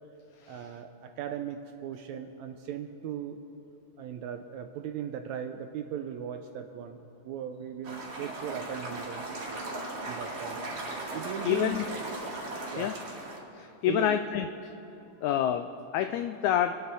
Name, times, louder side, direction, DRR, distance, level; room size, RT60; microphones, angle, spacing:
voice 1, 0.5-3.4 4.0-7.0 7.2-9.3 10.1-10.6 11.1-11.8 12.7-12.9 13.9-14.2, right 9 dB, 80° right, 6 dB, 1.7 m, -38 dB
sound 1, 7.8-13.4, right 2 dB, 60° right, 3.4 m, -37 dB
voice 2, 11.4-11.8 12.8-12.9 13.6-14.5 15.2-16.8, left 11 dB, 80° left, 8 dB, 1.7 m, -28 dB
27.5 x 10.5 x 4.1 m, 3.0 s
omnidirectional pair, 3.8 m